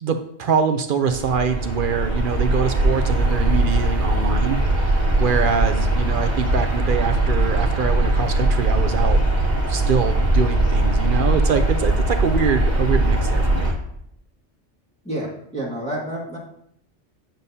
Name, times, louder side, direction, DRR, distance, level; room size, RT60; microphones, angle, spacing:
voice 1, 0.0-4.6 5.2-9.2 9.7-13.7, right 6 dB, 60° right, 8 dB, 0.6 m, -24 dB
sound 1, 1.1-13.7, right 1 dB, 40° right, 1.5 m, -20 dB
voice 2, 15.0-16.4, right 1 dB, 5° left, -5 dB, 1.7 m, -29 dB
9.0 x 6.7 x 2.7 m, 0.72 s
omnidirectional pair, 1.2 m